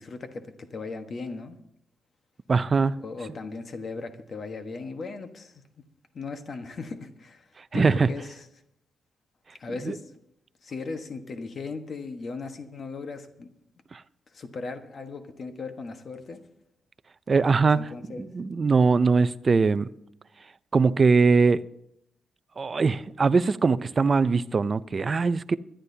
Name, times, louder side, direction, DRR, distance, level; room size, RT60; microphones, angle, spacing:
voice 1, 0.0-1.6 3.0-5.6 6.1-8.5 9.6-10.1 10.6-13.5 14.3-16.4 17.7-18.3, left 4 dB, 45° left, 1.2 m, -37 dB
voice 2, 2.5-3.0 7.7-8.1 9.8-9.9 13.9-14.0 17.3-17.9 18.2-19.9 20.7-21.6 22.6-25.6, right 4 dB, 30° right, 0.4 m, -21 dB
24.5 x 11.5 x 2.8 m
wide cardioid pair, 145°, 0 cm